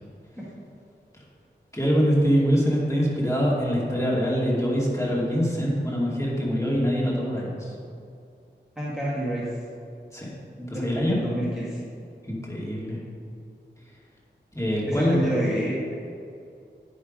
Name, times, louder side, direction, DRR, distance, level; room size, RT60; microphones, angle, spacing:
voice 1, 1.7-7.8 10.1-10.3 10.7-11.2 12.2-13.0 14.5-15.2, equal, 15° left, -5 dB, 2.2 m, -24 dB
voice 2, 8.8-9.5 10.6-11.8 14.9-15.9, right 1 dB, ahead, -7 dB, 1.8 m, -29 dB
9.3 x 5.6 x 5.2 m, 2.4 s
wide cardioid pair, 55°, 19 cm